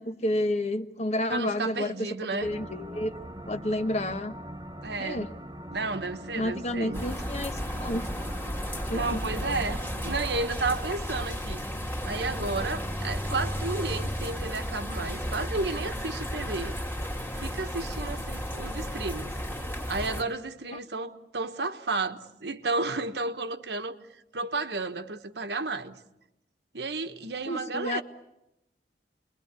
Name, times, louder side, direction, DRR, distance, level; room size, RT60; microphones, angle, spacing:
voice 1, 0.0-2.1 2.4-3.1 3.5-4.3 5.0-5.3 6.4-8.1 8.9-9.2 27.5-28.0, left 1 dB, 40° left, 1.1 m, -30 dB
voice 2, 1.3-2.5 4.8-5.3 5.7-7.0 8.9-11.6 12.0-16.8 17.4-19.4 19.9-24.0 24.3-26.0 26.7-28.0, right 3 dB, 70° right, 1.3 m, -32 dB
sound 1, 2.4-10.5, equal, 20° right, 1.0 m, -42 dB
sound 2, 6.9-20.2, equal, 10° left, 2.1 m, -33 dB
29.0 x 22.0 x 8.3 m
head